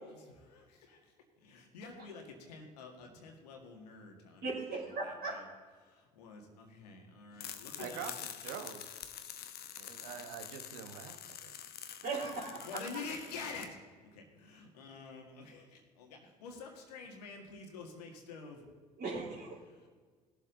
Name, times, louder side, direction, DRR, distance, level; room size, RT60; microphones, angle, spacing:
voice 1, 0.1-5.4 5.8-8.0 10.0-10.4 12.6-13.8 14.0-18.6 19.7-19.9, left 4 dB, 80° left, 3 dB, 1.9 m, -48 dB
voice 2, 4.4-5.4 12.0-12.7 19.0-19.6, right 3 dB, 55° right, -6 dB, 3.9 m, -38 dB
sound 1, 7.4-13.7, left 9 dB, 50° left, 1.0 m, -47 dB
voice 3, 7.8-8.8 9.8-11.6, right 8 dB, 70° right, 7 dB, 1.3 m, -45 dB
18.0 x 7.4 x 3.9 m, 1.5 s
hypercardioid pair, 60°, 20 cm